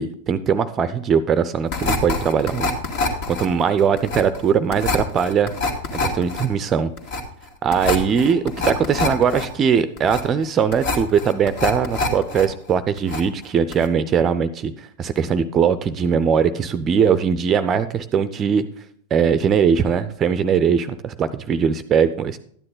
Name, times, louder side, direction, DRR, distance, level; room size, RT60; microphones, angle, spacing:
voice 1, 0.0-2.7 3.3-5.5 5.9-6.9 7.6-18.6 19.1-22.4, right 7 dB, 25° right, 13 dB, 0.5 m, -20 dB
sound 1, 1.7-12.5 12.7-13.4 13.7-13.9, left 3 dB, 45° left, 1.9 m, -25 dB
12.5 x 9.7 x 3.9 m, 0.63 s
figure-of-eight pair, 90°, 0 cm